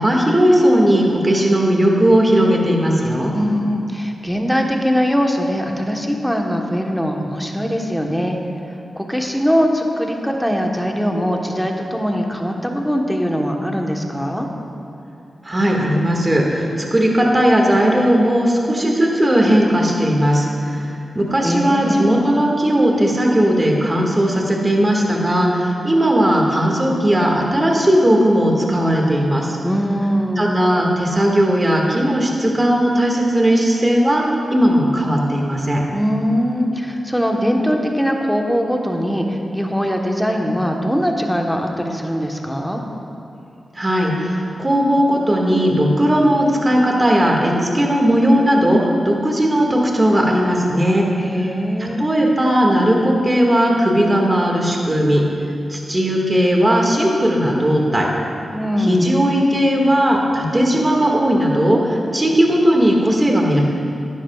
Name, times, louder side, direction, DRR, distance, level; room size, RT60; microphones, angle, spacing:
voice 1, 0.0-3.3 15.4-20.9 21.1-29.6 30.4-35.8 43.8-51.1 51.8-55.2 55.7-58.1 58.8-63.6, equal, 30° right, -1 dB, 1.9 m, -17 dB
voice 2, 3.3-8.4 9.0-14.5 21.4-22.2 29.6-30.5 35.9-42.8 51.2-52.0 58.5-59.1, equal, ahead, 1 dB, 1.2 m, -21 dB
11.5 x 10.0 x 2.4 m, 2.6 s
cardioid pair, 45°, 0 cm